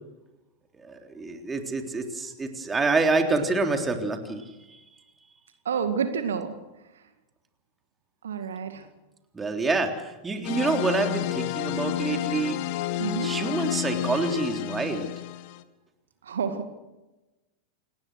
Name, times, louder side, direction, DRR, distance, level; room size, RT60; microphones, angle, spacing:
voice 1, 0.8-4.5 9.3-12.6 13.2-15.1, right 3 dB, 15° right, 4 dB, 3.5 m, -27 dB
voice 2, 5.7-6.5 8.2-8.9 13.0-13.3 16.2-16.7, right 6 dB, 65° right, 8 dB, 2.0 m, -29 dB
sound 1, 10.4-15.6, left 13 dB, 45° left, 1.4 m, -30 dB
29.0 x 19.5 x 6.4 m, 1.1 s
figure-of-eight pair, 90°, 0 cm